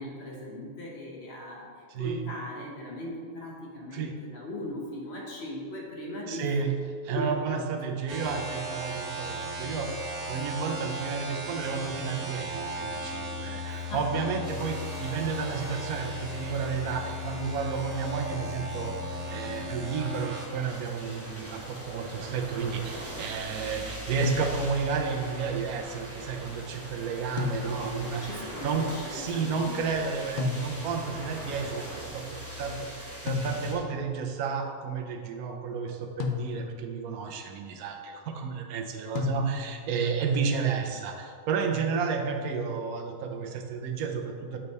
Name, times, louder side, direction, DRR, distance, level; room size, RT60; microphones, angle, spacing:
voice 1, 0.0-6.5 7.1-7.8 13.6-14.3 28.2-31.0, left 1 dB, 50° left, -3 dB, 1.1 m, -39 dB
voice 2, 1.9-2.2 3.9-4.1 6.3-6.7 7.0-28.8 29.1-44.6, right 5 dB, 90° right, 3 dB, 1.1 m, -32 dB
sound 1, 8.1-20.5, left 1 dB, 65° right, 1.1 m, -36 dB
sound 2, 14.4-33.8, right 1 dB, 15° right, 0.6 m, -42 dB
sound 3, 24.2-25.0 27.4-28.1 30.4-31.1 33.3-34.0 36.2-37.0 39.1-39.9, left 6 dB, 90° left, 0.4 m, -33 dB
7.2 x 3.3 x 4.0 m, 2.1 s
omnidirectional pair, 1.5 m